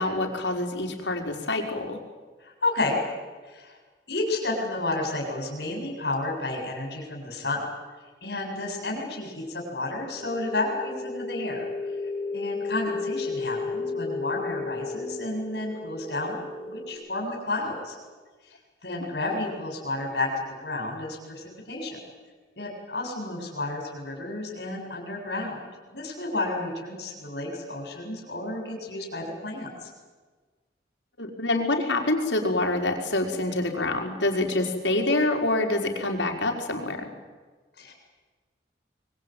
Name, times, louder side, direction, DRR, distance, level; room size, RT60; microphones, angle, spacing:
voice 1, 0.0-2.0 18.9-19.0 31.2-37.1, left 2 dB, 85° left, 2 dB, 4.9 m, -26 dB
voice 2, 2.4-3.0 3.5-3.8 4.1-7.6 8.2-11.7 12.3-18.0 18.8-22.0 22.6-25.6 25.9-29.9 37.8-37.9, left 2 dB, 65° left, 0 dB, 7.4 m, -31 dB
sound 1, 10.2-16.9, left 3 dB, 5° left, 6.9 m, -33 dB
25.5 x 22.5 x 9.3 m, 1.4 s
head